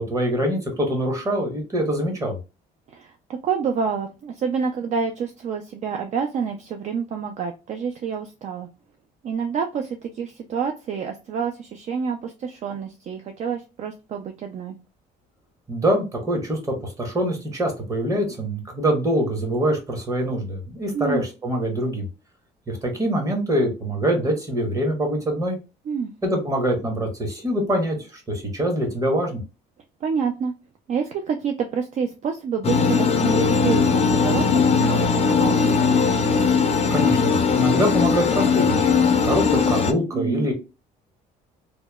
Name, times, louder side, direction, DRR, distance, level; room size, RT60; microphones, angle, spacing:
voice 1, 0.0-2.4 15.7-22.0 22.7-25.6 26.2-29.4 36.9-38.9 39.2-40.5, equal, 20° right, 2 dB, 0.9 m, -24 dB
voice 2, 3.4-8.7 9.2-14.7 20.9-21.2 25.9-26.1 30.0-30.5 30.9-34.5 34.8-36.0 40.1-40.5, right 6 dB, 45° right, 5 dB, 0.4 m, -28 dB
sound 1, 32.6-39.9, left 5 dB, 40° left, 0.4 m, -19 dB
2.8 x 2.0 x 2.2 m, 0.30 s
cardioid pair, 110°, 17 cm